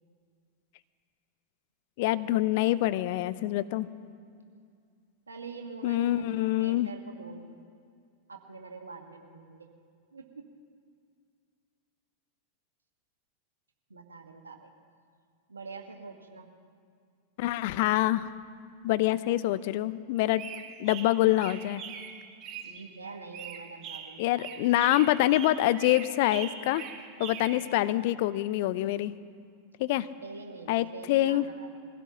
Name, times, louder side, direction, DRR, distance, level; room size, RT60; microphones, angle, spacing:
voice 1, 2.0-3.9 5.8-6.9 17.4-18.3 18.8-20.5 20.8-21.8 24.2-26.8 27.2-29.2 29.8-30.1 30.7-31.4, left 15 dB, 50° left, 16 dB, 0.5 m, -26 dB
voice 2, 5.3-7.5 8.3-9.7 10.1-10.4 13.9-14.7 15.5-16.5 19.2-19.3 22.6-24.5 27.5-27.9 30.2-31.8, right 4 dB, 75° right, 4 dB, 1.5 m, -45 dB
sound 1, 20.2-22.9 23.3-27.7, right 8 dB, 35° right, 1.6 m, -42 dB
22.5 x 16.0 x 2.9 m, 2.2 s
figure-of-eight pair, 90°, 0 cm